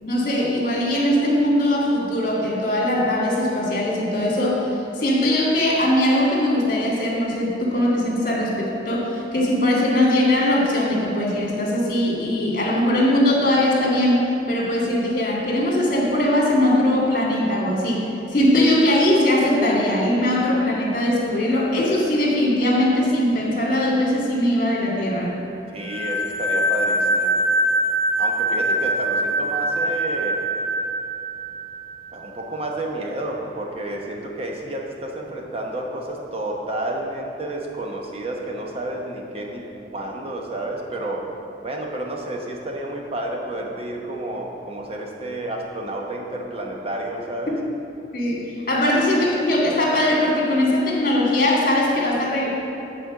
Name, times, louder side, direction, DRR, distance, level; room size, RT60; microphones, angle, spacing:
voice 1, 0.0-4.6 5.0-14.2 14.5-18.0 18.3-25.3 48.1-52.5, left 1 dB, 50° left, -3 dB, 1.9 m, -20 dB
voice 2, 25.7-27.4 28.2-30.4 32.1-41.3 41.6-47.5, right 1 dB, 35° right, 0 dB, 0.9 m, -30 dB
sound 1, 25.9-32.4, right 1 dB, 5° left, 0.6 m, -23 dB
9.0 x 4.3 x 5.9 m, 3.0 s
head